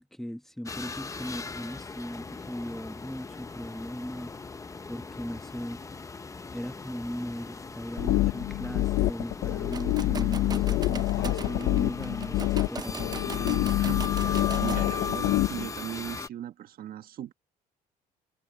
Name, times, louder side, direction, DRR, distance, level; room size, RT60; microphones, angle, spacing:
voice 1, 0.0-4.4 4.9-5.8 6.5-13.8, equal, ahead, 1.3 m, -38 dB
sound 1, 0.7-16.3, left 4 dB, 20° left, 0.8 m, -39 dB
sound 2, 8.0-15.7, left 16 dB, 80° left, 0.7 m, -27 dB
sound 3, 9.6-15.1, right 5 dB, 25° right, 0.6 m, -40 dB
voice 2, 13.8-17.3, right 11 dB, 60° right, 1.5 m, -38 dB
cardioid pair, 110°, 17 cm